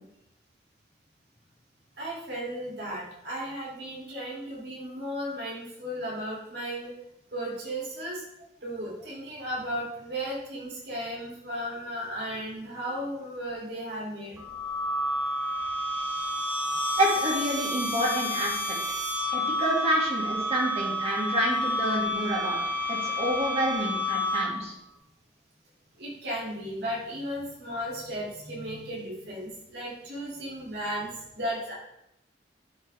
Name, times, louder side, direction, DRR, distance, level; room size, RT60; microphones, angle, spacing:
voice 1, 2.0-6.9 7.3-8.2 8.6-14.4 26.0-31.7, equal, 70° right, -4 dB, 3.7 m, -35 dB
sound 1, 14.4-24.8, left 1 dB, 10° right, 1.7 m, -30 dB
voice 2, 17.0-18.5 19.3-22.6 22.9-24.7, equal, 35° right, -2 dB, 2.6 m, -28 dB
12.0 x 6.4 x 3.7 m, 0.81 s
head